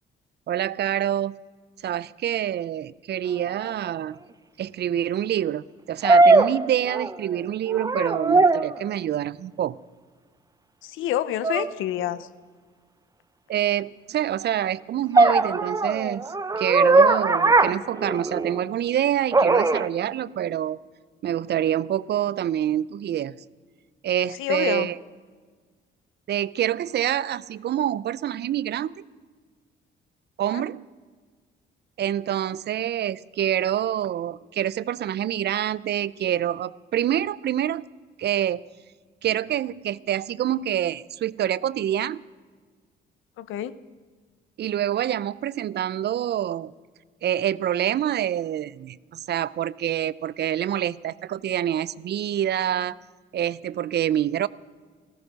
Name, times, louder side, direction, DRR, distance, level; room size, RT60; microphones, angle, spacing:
voice 1, 0.5-1.4 1.8-4.2 4.6-5.6 5.9-9.8 13.5-20.8 21.2-23.4 24.0-25.0 26.3-29.0 30.4-30.8 32.0-37.8 38.2-38.6 39.2-42.2 44.6-46.7 47.2-53.0 53.3-54.5, right 11 dB, 60° right, 20 dB, 0.5 m, -26 dB
sound 1, 3.6-3.7 6.0-7.3 7.7-8.8 11.4-11.7 15.1-18.6 19.3-19.9, right 3 dB, 20° right, 0.7 m, -19 dB
voice 2, 10.8-12.3 24.4-24.9 30.5-30.6 43.4-43.8, left 12 dB, 85° left, 16 dB, 0.8 m, -28 dB
15.0 x 14.5 x 6.4 m, 1.5 s
cardioid pair, 90°, 20 cm